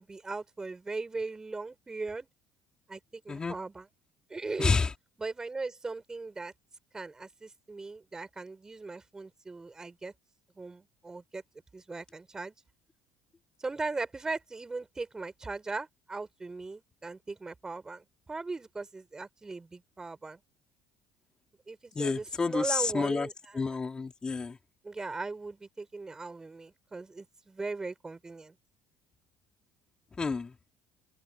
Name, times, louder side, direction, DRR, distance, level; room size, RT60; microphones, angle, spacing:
voice 1, 0.0-2.3 2.9-3.9 4.3-4.8 5.2-6.5 6.9-10.1 10.5-11.4 11.7-12.5 13.6-20.4 21.7-23.8 24.8-28.5, right 3 dB, 20° right, 6.5 m, -39 dB
voice 2, 4.6-4.9 21.9-23.3 23.5-24.6 30.2-30.5, left 4 dB, 25° left, 4.5 m, -29 dB
supercardioid pair, 75°, 3 cm